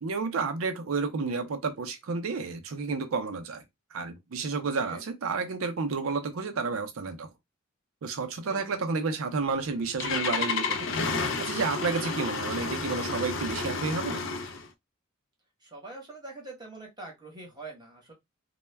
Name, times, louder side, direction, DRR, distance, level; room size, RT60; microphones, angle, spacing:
voice 1, 0.0-3.6 3.9-7.3 8.0-10.9 11.4-14.4, right 4 dB, 80° right, 0.5 m, -31 dB
Engine starting, 9.5-14.7, left 4 dB, 60° left, 0.4 m, -31 dB
voice 2, 15.6-18.1, right 2 dB, 20° right, 0.9 m, -44 dB
2.2 x 2.1 x 3.2 m
head